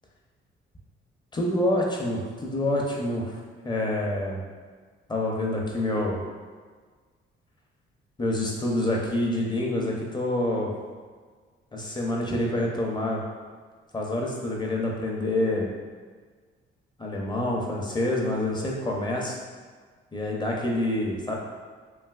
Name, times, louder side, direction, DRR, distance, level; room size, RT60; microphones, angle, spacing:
voice 1, 1.3-3.3 3.6-4.4 5.1-6.2 8.2-10.7 11.7-13.2 13.9-15.7 17.0-19.4 20.1-21.3, left 1 dB, 20° left, -2 dB, 0.6 m, -27 dB
3.1 x 2.6 x 2.4 m, 1.5 s
cardioid pair, 90°, 20 cm